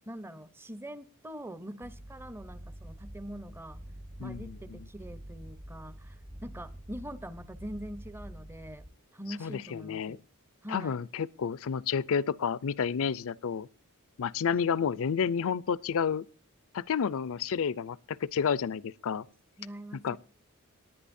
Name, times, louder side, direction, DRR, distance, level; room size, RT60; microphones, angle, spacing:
voice 1, 0.1-3.8 4.2-6.2 6.4-8.8 9.1-10.2 10.6-11.0 14.5-14.7 19.6-20.2, equal, 10° right, 0.7 m, -43 dB
sound 1, 1.8-8.9, right 1 dB, 30° right, 1.1 m, -47 dB
voice 2, 4.2-4.6 9.4-10.2 10.7-13.7 14.2-16.2 16.7-19.2 20.0-20.2, left 6 dB, 65° left, 0.5 m, -30 dB
18.5 x 10.5 x 2.6 m
head